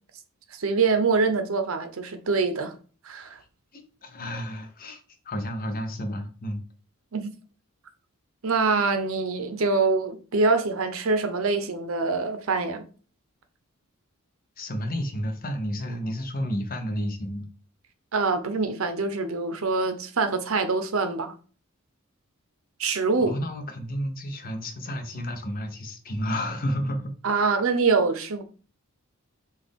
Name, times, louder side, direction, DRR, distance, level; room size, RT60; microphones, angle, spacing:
voice 1, 0.5-2.7 3.0-3.4 7.1-7.3 8.4-12.8 18.1-21.3 22.8-23.4 27.2-28.4, right 4 dB, 70° right, 0.7 m, -24 dB
voice 2, 3.7-6.6 14.6-17.5 23.3-27.1, equal, 45° left, 0.8 m, -31 dB
6.0 x 2.4 x 3.5 m
head